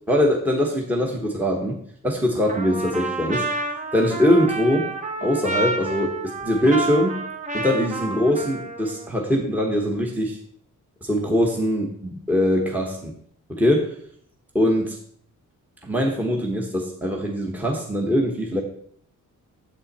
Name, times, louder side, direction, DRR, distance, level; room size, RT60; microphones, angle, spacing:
voice 1, 0.1-1.8 2.0-3.5 3.9-4.9 5.2-7.2 7.5-10.4 11.0-13.1 13.5-13.9 14.5-14.9 15.8-18.6, equal, 5° right, 0 dB, 1.2 m, -22 dB
Trumpet, 2.5-9.1, right 3 dB, 20° right, 1.0 m, -29 dB
9.0 x 7.7 x 4.2 m, 0.62 s
wide cardioid pair, 165°, 32 cm